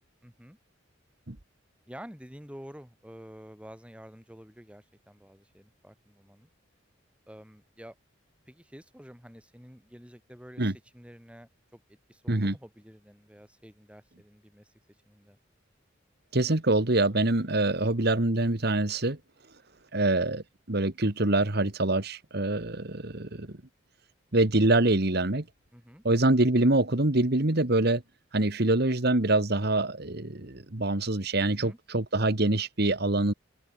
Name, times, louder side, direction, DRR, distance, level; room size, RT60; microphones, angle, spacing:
voice 1, 0.2-0.6 1.9-6.5 7.3-7.9 8.5-14.7 15.1-15.4 25.7-26.0 31.5-31.8, equal, 5° right, 7.3 m, -49 dB
voice 2, 16.3-19.2 19.9-23.6 24.3-25.4 26.0-28.0 28.3-33.3, right 2 dB, 55° right, 1.8 m, -25 dB
open air
head